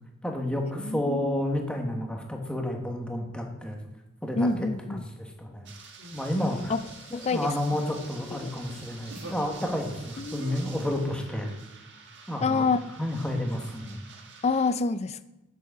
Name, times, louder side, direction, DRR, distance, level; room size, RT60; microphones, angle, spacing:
voice 1, 0.2-3.8 4.2-5.7 6.1-6.7 7.1-11.5 12.3-12.6 13.0-14.0, left 1 dB, 5° left, 1 dB, 1.3 m, -31 dB
voice 2, 0.8-1.4 4.4-5.0 6.7-6.8 7.1-7.5 8.4-8.5 10.2-10.4 12.4-12.8 14.4-15.2, left 4 dB, 30° left, 14 dB, 0.4 m, -27 dB
sound 1, 5.7-14.7, right 5 dB, 55° right, 1.4 m, -49 dB
sound 2, 6.0-6.7 7.6-8.0 8.6-8.8 9.1-9.5 10.4-10.6, right 1 dB, 75° right, 1.9 m, -44 dB
sound 3, 6.1-11.4, left 3 dB, 85° left, 2.7 m, -52 dB
7.6 x 6.8 x 6.0 m, 1.0 s
head